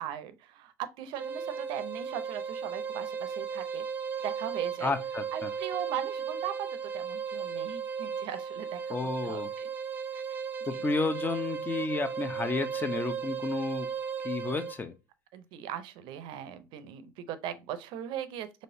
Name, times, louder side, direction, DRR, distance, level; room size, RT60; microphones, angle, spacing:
voice 1, 0.0-3.8 4.2-4.9 5.3-9.7 10.1-10.2 10.7-10.8 15.3-18.6, right 10 dB, 60° right, 0.6 m, -39 dB
sound 1, 1.1-14.8, right 6 dB, 25° right, 0.7 m, -36 dB
voice 2, 4.8-5.5 8.9-9.5 10.7-13.9 14.2-14.9, left 3 dB, 20° left, 0.7 m, -31 dB
4.2 x 3.1 x 2.6 m
hypercardioid pair, 80°, 9 cm